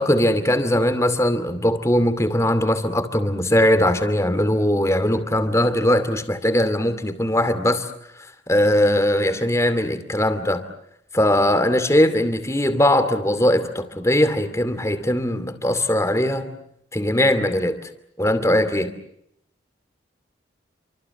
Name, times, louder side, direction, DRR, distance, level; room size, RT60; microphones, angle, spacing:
voice 1, 0.0-7.9 8.2-10.6 11.1-16.5 16.9-17.9 18.2-18.9, left 1 dB, 15° left, 10 dB, 2.5 m, -20 dB
29.0 x 25.5 x 7.1 m, 0.74 s
head